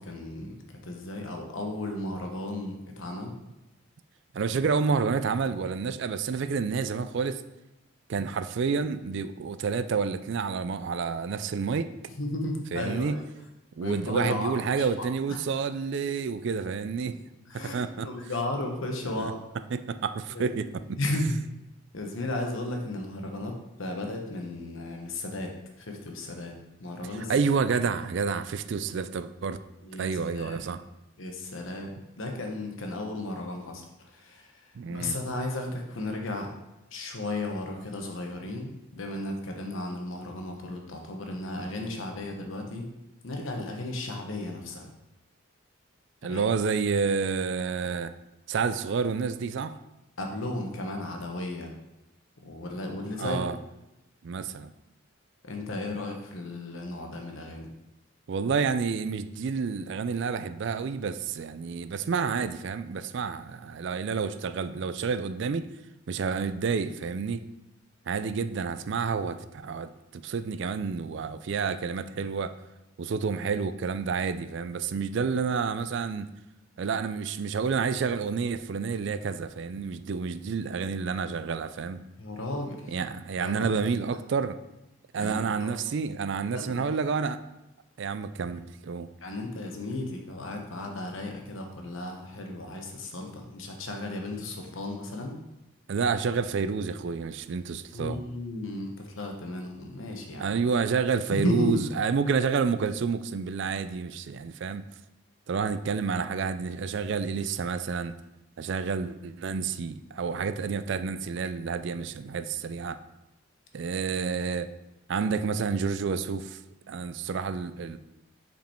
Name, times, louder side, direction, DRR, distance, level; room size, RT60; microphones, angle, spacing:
voice 1, 0.0-3.3 12.2-13.2 13.8-15.4 17.5-19.4 20.3-20.6 21.0-21.4 21.9-26.5 26.8-27.3 29.8-30.7 31.2-34.6 34.9-36.5 36.9-42.9 43.2-44.9 46.3-46.4 50.2-51.7 52.4-53.4 55.4-57.7 82.2-82.9 83.4-84.0 85.2-85.8 86.5-87.0 89.2-95.4 97.9-100.5 101.3-101.8, left 2 dB, 65° left, 2 dB, 1.0 m, -34 dB
voice 2, 4.3-7.4 8.1-11.9 12.7-13.2 13.8-17.2 17.5-18.1 19.2-19.3 19.7-21.0 27.3-29.6 30.0-30.8 34.7-35.2 46.2-48.1 48.5-49.8 53.2-53.6 54.2-54.7 58.3-65.7 66.1-67.4 68.1-72.5 73.0-76.3 76.8-82.0 82.9-84.6 85.1-87.4 88.0-89.1 95.9-98.2 100.4-104.9 105.5-108.1 108.6-113.0 113.7-114.7 115.1-116.6 116.9-118.0, right 5 dB, 55° right, 12 dB, 0.3 m, -29 dB
5.2 x 5.2 x 4.4 m, 0.97 s
head